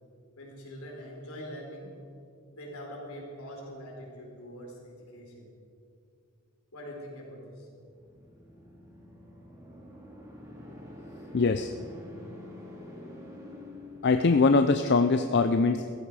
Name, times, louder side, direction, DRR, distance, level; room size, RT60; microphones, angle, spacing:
voice 1, 0.4-1.9 2.5-5.5 6.7-7.7, equal, 75° left, -1 dB, 4.1 m, -43 dB
sound 1, 7.7-14.7, left 1 dB, 15° right, 3.1 m, -47 dB
voice 2, 11.3-11.7 14.0-15.9, left 4 dB, 50° left, 8 dB, 0.5 m, -22 dB
17.0 x 14.5 x 4.8 m, 2.5 s
head